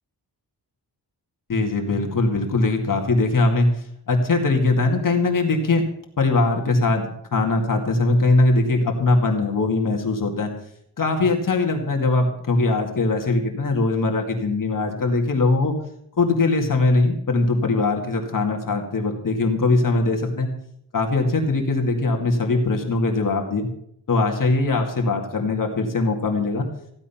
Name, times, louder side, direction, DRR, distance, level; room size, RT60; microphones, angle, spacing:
voice 1, 1.5-3.7 4.1-5.9 6.2-7.1 7.3-10.5 11.0-15.7 16.2-20.5 20.9-23.7 24.1-26.7, left 3 dB, 50° left, 2 dB, 2.3 m, -21 dB
15.5 x 11.5 x 5.8 m, 0.72 s
wide cardioid pair, 170°, 41 cm